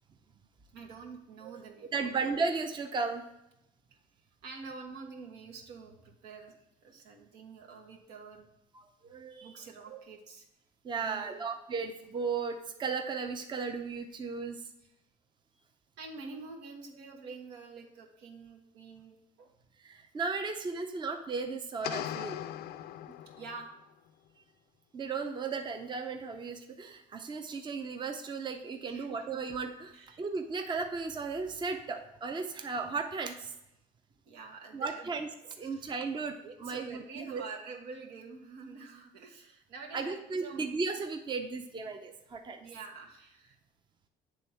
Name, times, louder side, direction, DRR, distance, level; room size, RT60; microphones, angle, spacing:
voice 1, 0.7-2.1 3.9-4.0 4.4-6.5 6.8-8.5 9.4-10.5 11.0-11.4 16.0-19.5 23.4-23.7 28.8-29.1 29.9-30.2 34.2-35.1 35.4-35.9 36.4-40.7 42.6-43.6, right 4 dB, 85° right, 1 dB, 1.3 m, -47 dB
voice 2, 1.9-3.2 8.7-9.5 9.9-10.0 10.8-14.7 19.8-22.4 23.1-23.2 24.9-33.5 34.7-35.3 35.6-37.4 39.9-42.6, right 4 dB, 25° right, 5 dB, 0.6 m, -35 dB
sound 1, 21.8-23.8, left 11 dB, 70° left, 0.4 m, -39 dB
7.9 x 3.6 x 4.4 m, 0.85 s
cardioid pair, 110°, 17 cm